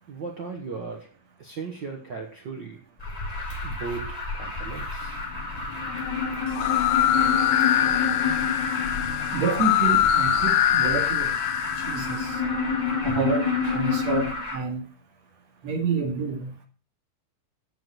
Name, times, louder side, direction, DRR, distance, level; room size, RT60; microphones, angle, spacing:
voice 1, 0.1-1.1 1.4-2.8 3.6-5.2, right 4 dB, 75° right, 2 dB, 1.0 m, -37 dB
Alarm, 3.0-14.5, left 2 dB, 10° left, 4.3 m, -33 dB
sound 1, 5.0-14.3, left 6 dB, 55° left, 2.5 m, -29 dB
sound 2, 6.5-12.3, left 11 dB, 75° left, 1.9 m, -23 dB
voice 2, 9.3-11.4 11.8-12.4 13.0-14.8 15.6-16.5, right 5 dB, 50° right, 3 dB, 3.2 m, -28 dB
8.6 x 7.6 x 7.9 m, 0.37 s
omnidirectional pair, 4.3 m